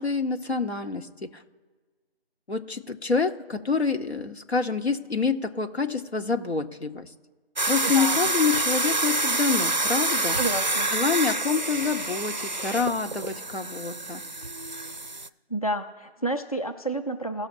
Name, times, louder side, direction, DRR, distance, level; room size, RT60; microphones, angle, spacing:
voice 1, 0.0-1.4 2.5-7.1 7.7-10.4 10.9-14.2, left 4 dB, 85° left, 5 dB, 1.1 m, -27 dB
sound 1, 7.6-15.3, right 2 dB, 45° right, 0.4 m, -27 dB
voice 2, 7.8-8.2 10.4-10.9 15.5-17.5, right 1 dB, 35° left, 5 dB, 0.5 m, -30 dB
17.5 x 6.4 x 2.7 m, 1.4 s
figure-of-eight pair, 170°, 32 cm